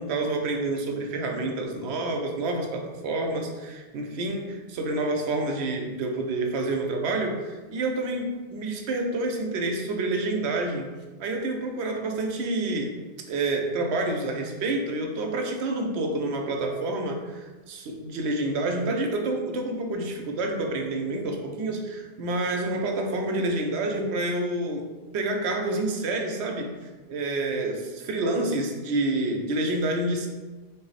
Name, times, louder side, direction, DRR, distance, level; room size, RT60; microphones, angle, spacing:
voice 1, 0.0-10.9 11.2-12.9 13.3-24.8 25.1-26.7 27.1-30.3, right 2 dB, 85° right, 3 dB, 0.8 m, -28 dB
3.9 x 2.0 x 4.0 m, 1.3 s
omnidirectional pair, 1.1 m